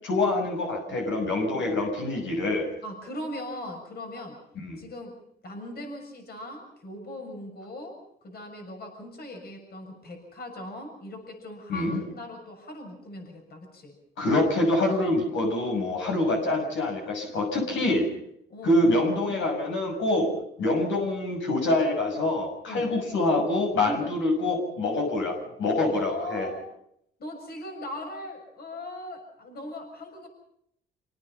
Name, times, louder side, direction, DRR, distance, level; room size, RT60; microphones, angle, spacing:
voice 1, 0.0-2.7 4.6-4.8 11.7-12.0 14.2-18.1 18.6-20.3 20.6-26.5, left 2 dB, 75° left, 2 dB, 6.6 m, -25 dB
voice 2, 2.8-4.4 4.8-5.1 5.4-8.0 8.2-14.0 17.7-18.1 18.5-18.8 20.2-20.3 22.7-22.9 23.8-24.0 25.1-25.3 25.8-26.6 27.2-30.3, left 1 dB, 50° left, 3 dB, 6.7 m, -39 dB
27.0 x 18.5 x 5.8 m, 0.73 s
cardioid pair, 90°, 20 cm